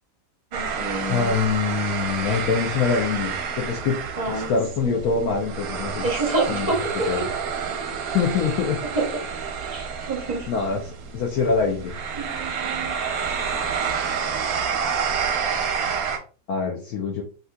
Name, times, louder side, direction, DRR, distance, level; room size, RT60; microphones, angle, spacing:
voice 1, 0.5-1.3 4.2-4.6 4.8-5.0 6.0-7.1 9.0-9.1 9.6-10.5 12.2-13.0, right 2 dB, 40° right, -1 dB, 0.6 m, -28 dB
sound 1, 0.5-16.2, right 6 dB, 65° right, 0.9 m, -29 dB
voice 2, 1.1-4.0 4.3-6.1 6.5-6.7 7.1-7.3 8.1-8.8 10.5-10.8 11.1-11.9 16.5-17.2, left 5 dB, 70° left, 0 dB, 1.0 m, -24 dB
3.6 x 2.8 x 2.2 m, 0.38 s
omnidirectional pair, 2.0 m